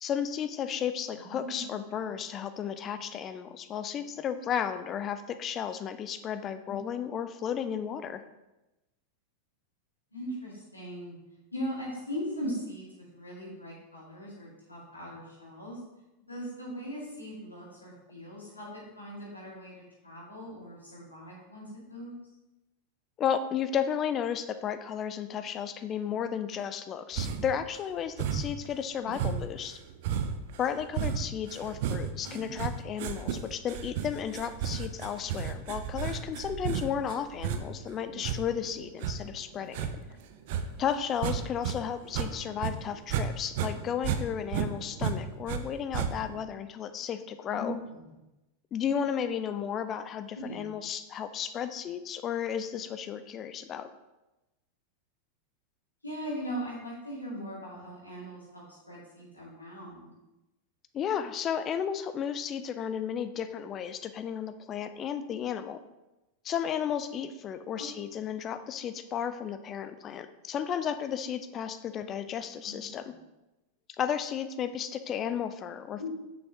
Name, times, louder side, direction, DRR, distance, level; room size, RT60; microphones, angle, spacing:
voice 1, 0.0-8.2 23.2-29.8 30.6-39.9 40.8-47.8 48.7-53.9 60.9-65.8 66.4-73.1 74.0-76.1, left 8 dB, 30° left, 10 dB, 0.4 m, -33 dB
voice 2, 1.1-2.1 6.7-6.8 10.1-11.2 11.5-15.8 16.3-22.1 29.0-29.5 32.2-32.6 42.5-42.6 47.5-48.0 50.3-50.6 56.0-60.1 67.8-67.9 72.6-72.9 76.0-76.1, equal, 80° left, -6 dB, 2.2 m, -40 dB
sound 1, 27.1-27.6 28.2-28.7 29.1-41.8 42.0-43.3 43.5-45.6 45.9-46.4, right 8 dB, 50° right, 0.5 m, -33 dB
6.2 x 5.7 x 2.9 m, 1.0 s
figure-of-eight pair, 90°, 0 cm